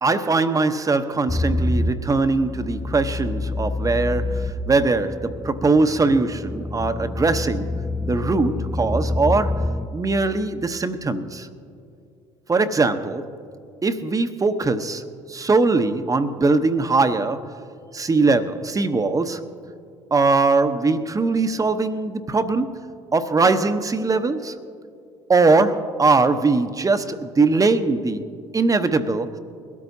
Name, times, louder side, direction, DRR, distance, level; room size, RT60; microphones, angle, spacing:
voice 1, 0.0-11.5 12.5-13.3 13.8-15.0 15.3-17.6 17.9-19.4 20.1-24.6 25.3-28.2 28.5-29.4, right 3 dB, 20° right, 0.9 m, -21 dB
sound 1, 1.3-9.9, left 2 dB, ahead, 0.5 m, -27 dB
22.0 x 13.0 x 2.7 m
hypercardioid pair, 60°, 15 cm